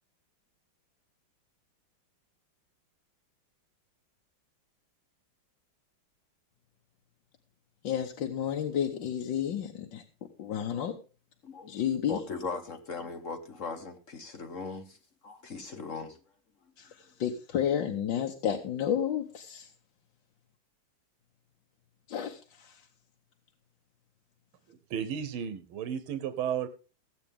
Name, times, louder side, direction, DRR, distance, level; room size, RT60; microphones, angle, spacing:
voice 1, 7.8-10.0 10.4-10.9 11.7-12.2 16.8-16.9 17.2-19.7 22.1-22.7, left 9 dB, 65° left, 2 dB, 1.7 m, -31 dB
voice 2, 12.1-15.0 15.2-16.2, left 4 dB, 45° left, 7 dB, 1.3 m, -38 dB
voice 3, 24.7-26.7, right 8 dB, 85° right, 11 dB, 1.7 m, -33 dB
16.5 x 8.4 x 3.6 m, 0.34 s
omnidirectional pair, 2.2 m